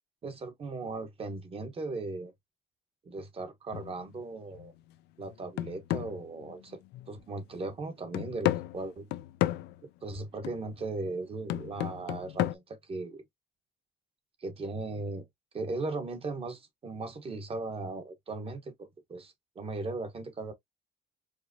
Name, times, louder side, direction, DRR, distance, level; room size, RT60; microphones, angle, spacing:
voice 1, 0.2-2.3 3.0-4.7 5.2-6.8 7.1-9.1 10.0-13.2 14.4-15.2 15.5-20.5, right 3 dB, 35° right, 1.1 m, -37 dB
sound 1, 3.7-4.0 4.5-4.7 5.2-7.2 7.5-7.6 8.1-9.8 10.4-10.7 11.5-12.5, left 15 dB, 75° left, 0.4 m, -33 dB
4.7 x 2.0 x 2.6 m
cardioid pair, 110°, 17 cm